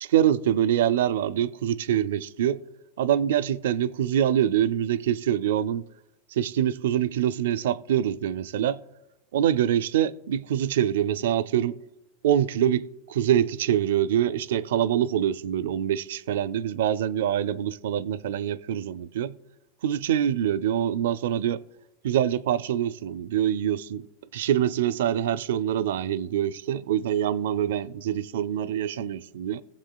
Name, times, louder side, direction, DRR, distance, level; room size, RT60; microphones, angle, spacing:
voice 1, 0.0-2.6 3.0-5.8 6.3-8.8 9.3-11.8 12.2-19.4 19.8-21.6 22.0-24.1 24.3-29.6, right 10 dB, 80° right, 0.4 m, -25 dB
19.5 x 7.4 x 2.2 m
supercardioid pair, 125°, 0 cm